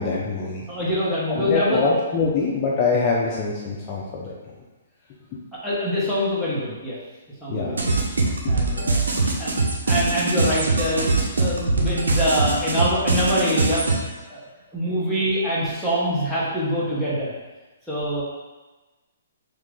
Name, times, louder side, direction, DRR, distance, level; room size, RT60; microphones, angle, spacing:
voice 1, 0.0-0.7 1.3-4.3 7.5-7.8 8.4-8.5, left 4 dB, 30° left, -4 dB, 0.4 m, -24 dB
voice 2, 0.7-1.8 5.5-7.0 7.4-7.9 8.5-9.1 9.4-9.5 9.9-13.8 14.3-14.5 14.7-17.3 17.9-18.2, equal, 5° right, -10 dB, 0.9 m, -24 dB
sound 1, 7.8-14.0, right 3 dB, 90° right, 0.6 m, -22 dB
3.0 x 2.3 x 3.6 m, 1.2 s
hypercardioid pair, 140°, 0 cm